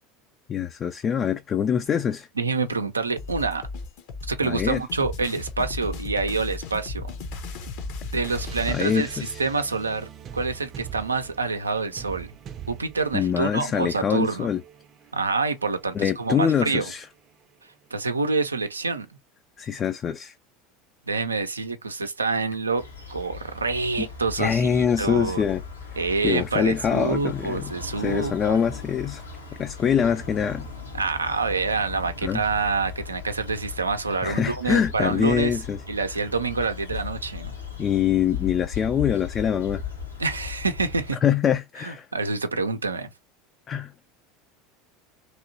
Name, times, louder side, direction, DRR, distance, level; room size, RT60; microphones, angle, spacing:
voice 1, 0.5-2.3 4.4-4.8 8.7-9.4 13.1-14.6 15.9-17.1 19.6-20.3 24.0-24.1 24.4-25.6 26.2-27.7 28.0-29.2 29.6-30.7 32.2-32.4 34.2-35.8 37.8-39.8 41.2-42.1 43.7-43.9, left 8 dB, 35° left, 0.4 m, -24 dB
voice 2, 2.4-3.6 4.3-7.1 8.1-12.3 12.7-14.5 15.1-16.9 17.9-19.1 21.1-25.4 26.0-28.6 30.9-35.6 35.9-37.6 40.2-41.2 41.8-43.1, right 4 dB, 85° right, 0.5 m, -27 dB
sound 1, 3.2-8.8, left 3 dB, 55° left, 0.8 m, -35 dB
sound 2, 8.0-17.9, right 9 dB, 40° right, 0.6 m, -44 dB
sound 3, 22.8-41.1, left 5 dB, 85° left, 1.1 m, -38 dB
3.0 x 2.8 x 2.7 m
figure-of-eight pair, 75°, 0 cm